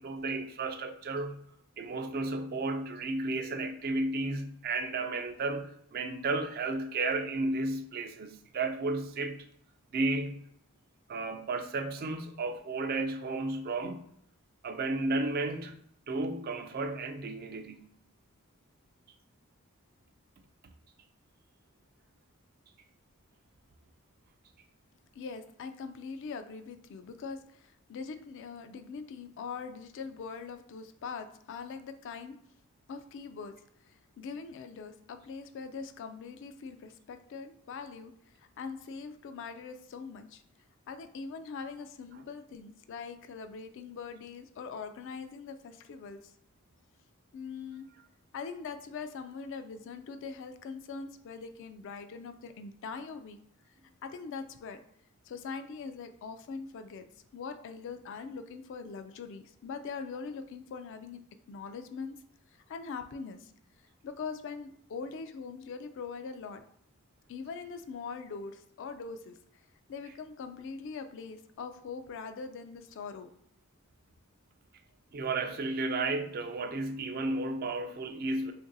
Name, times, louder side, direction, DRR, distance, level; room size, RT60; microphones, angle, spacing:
voice 1, 0.0-1.4 1.8-9.5 9.9-10.5 11.1-14.0 14.6-15.8 16.1-17.9 75.1-78.5, right 2 dB, 45° right, 0.4 m, -33 dB
voice 2, 25.2-32.4 32.9-33.5 33.8-40.4 40.9-46.3 47.3-47.9 48.3-53.4 54.0-54.8 55.2-57.1 57.3-61.2 61.5-62.2 62.7-63.5 64.0-66.6 67.3-69.4 69.9-73.3, left 5 dB, 60° left, 0.3 m, -42 dB
2.9 x 2.5 x 3.9 m
head